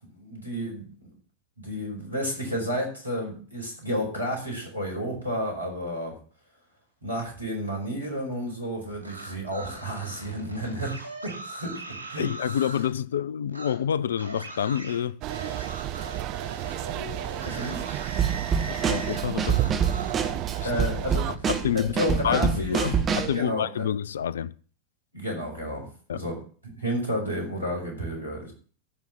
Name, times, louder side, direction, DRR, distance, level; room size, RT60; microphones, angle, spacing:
voice 1, 0.1-1.1 1.6-6.2 7.0-10.9 11.2-11.8 12.1-12.3 17.4-17.9 20.6-21.3 21.7-23.0 23.3-23.8 25.1-26.4 26.8-28.5, equal, 85° right, 5.1 m, -31 dB
sound 1, 8.9-12.9 13.5-13.7 14.2-20.2 20.5-22.2, right 2 dB, 90° left, 2.4 m, -41 dB
voice 2, 12.2-15.2 18.9-19.6 20.6-20.7 21.3-24.5 26.1-26.2, left 9 dB, 65° left, 0.5 m, -28 dB
sound 2, 15.2-21.4, right 14 dB, 40° right, 0.7 m, -32 dB
Drum kit / Snare drum, 18.2-23.4, right 6 dB, 25° right, 1.8 m, -26 dB
14.0 x 5.6 x 7.3 m
figure-of-eight pair, 90°, 0 cm